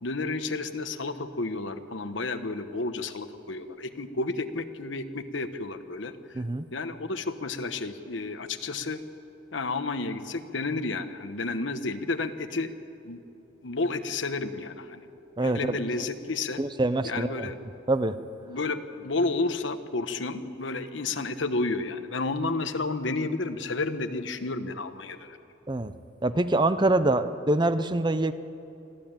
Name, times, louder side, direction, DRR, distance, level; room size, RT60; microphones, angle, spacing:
voice 1, 0.0-6.4 6.7-9.0 9.5-12.7 13.0-13.2 13.6-15.0 15.4-16.6 17.0-17.6 18.4-25.4, left 3 dB, 70° left, 9 dB, 1.1 m, -31 dB
voice 2, 6.3-6.7 15.4-15.8 16.6-17.5 17.9-18.2 25.7-25.9 26.2-28.3, right 2 dB, 25° right, 12 dB, 0.6 m, -25 dB
25.0 x 14.5 x 8.9 m, 2.7 s
head